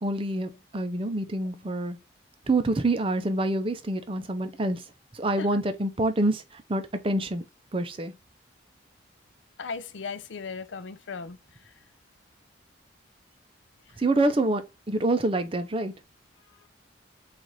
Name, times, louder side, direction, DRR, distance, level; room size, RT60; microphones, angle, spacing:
voice 1, 0.0-2.0 2.5-4.8 5.1-7.4 7.7-8.1 14.0-14.6 14.9-15.9, right 2 dB, 30° right, 0.5 m, -26 dB
voice 2, 9.6-11.4, left 5 dB, 75° left, 0.5 m, -36 dB
4.6 x 2.5 x 4.0 m
head